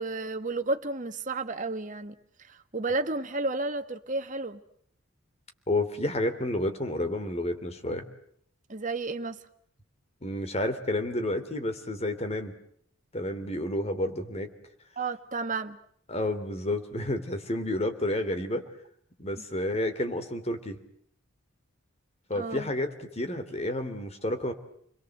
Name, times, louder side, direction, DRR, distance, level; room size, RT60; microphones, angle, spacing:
voice 1, 0.0-4.6 8.7-9.4 15.0-15.8 19.4-19.5 22.3-22.7, right 3 dB, 40° right, 1.7 m, -32 dB
voice 2, 5.7-8.0 10.2-12.5 13.1-14.5 16.1-18.6 19.2-20.8 22.3-24.5, left 1 dB, 30° left, 3.1 m, -30 dB
30.0 x 22.5 x 7.9 m
head